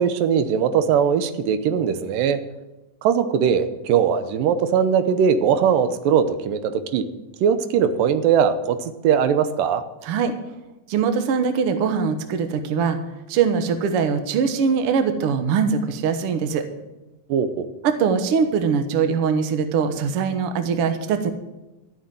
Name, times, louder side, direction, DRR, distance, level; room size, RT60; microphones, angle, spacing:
voice 1, 0.0-2.4 3.0-7.0 7.4-9.8 17.3-17.7, right 7 dB, 90° right, 10 dB, 2.5 m, -20 dB
voice 2, 10.0-10.3 10.9-13.0 13.3-16.6 17.8-21.3, right 6 dB, 60° right, 8 dB, 1.6 m, -22 dB
13.0 x 7.0 x 9.1 m, 1.0 s
omnidirectional pair, 3.9 m